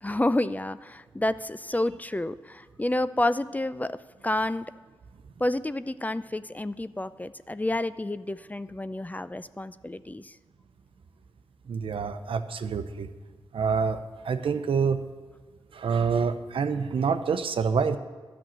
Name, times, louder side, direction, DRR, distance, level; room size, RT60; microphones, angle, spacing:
voice 1, 0.0-4.0 4.2-4.7 5.4-10.4, left 1 dB, 15° left, 14 dB, 0.5 m, -29 dB
voice 2, 11.7-13.1 13.5-15.0 15.7-18.0, right 5 dB, 75° right, 9 dB, 0.7 m, -27 dB
12.5 x 6.3 x 8.9 m, 1.4 s
cardioid pair, 45°, 9 cm